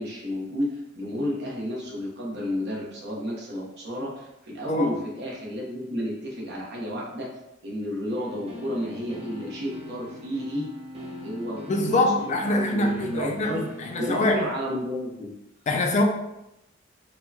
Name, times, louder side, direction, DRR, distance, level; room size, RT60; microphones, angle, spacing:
voice 1, 0.0-7.3 7.6-10.7 11.2-13.7 14.0-15.3, equal, 55° right, 0.9 m, -31 dB
sound 1, 8.1-14.3, left 1 dB, 30° right, 0.7 m, -41 dB
voice 2, 11.7-14.4 15.7-16.0, left 2 dB, 35° left, 0.3 m, -24 dB
4.4 x 2.2 x 2.8 m
head